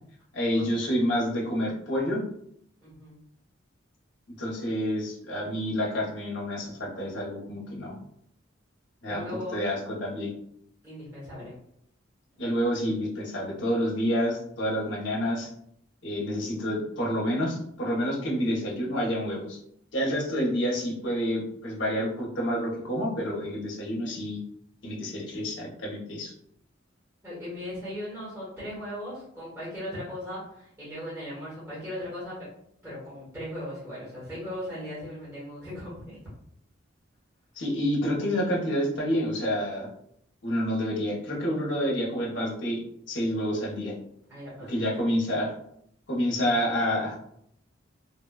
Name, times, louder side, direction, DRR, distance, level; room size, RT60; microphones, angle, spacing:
voice 1, 0.3-2.2 4.4-8.0 9.0-9.2 9.5-10.3 12.4-15.5 16.0-19.6 19.9-24.4 24.8-26.3 37.6-39.9 40.4-42.8 43.1-43.9 44.7-45.5 46.1-47.2, equal, 65° left, -3 dB, 0.8 m, -28 dB
voice 2, 2.8-3.2 9.0-9.6 10.8-11.5 27.2-32.5 32.8-36.2 44.3-44.7, left 1 dB, 15° right, -10 dB, 1.0 m, -38 dB
3.0 x 2.1 x 2.2 m, 0.70 s
head